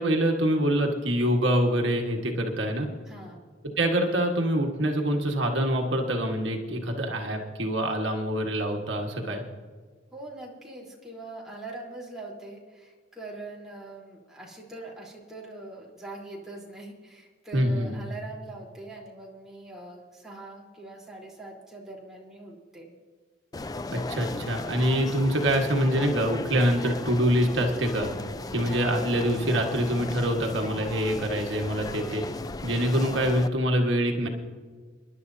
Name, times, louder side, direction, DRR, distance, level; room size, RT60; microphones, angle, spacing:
voice 1, 0.0-2.9 3.8-9.4 17.5-18.0 23.9-28.1 28.5-32.2 32.6-34.3, equal, 70° right, 1 dB, 1.6 m, -25 dB
voice 2, 3.1-3.4 10.1-22.9, right 2 dB, ahead, -5 dB, 3.7 m, -42 dB
sound 1, 23.5-33.5, left 2 dB, 20° left, 0.4 m, -36 dB
28.0 x 11.0 x 2.8 m, 1.5 s
head